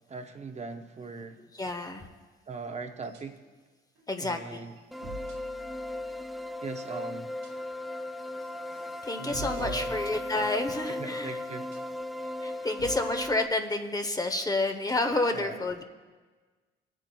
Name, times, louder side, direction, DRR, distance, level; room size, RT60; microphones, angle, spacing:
voice 1, 0.1-1.4 2.5-3.4 4.2-4.8 6.6-7.3 9.2-10.0 11.0-11.8 15.3-15.7, right 4 dB, 35° right, 6 dB, 0.7 m, -40 dB
voice 2, 1.6-2.1 4.1-4.7 9.0-11.4 12.4-15.8, left 2 dB, 20° left, 6 dB, 0.8 m, -30 dB
sound 1, 3.0-3.5 4.0-4.1 4.5-6.5 7.4-7.8 8.2-8.4 8.8-10.8 11.5-12.1 12.5-13.4, right 2 dB, 80° right, 1.8 m, -45 dB
sound 2, 4.9-13.5, left 1 dB, ahead, 0.3 m, -36 dB
22.5 x 9.0 x 2.3 m, 1.4 s
cardioid pair, 90°, 20 cm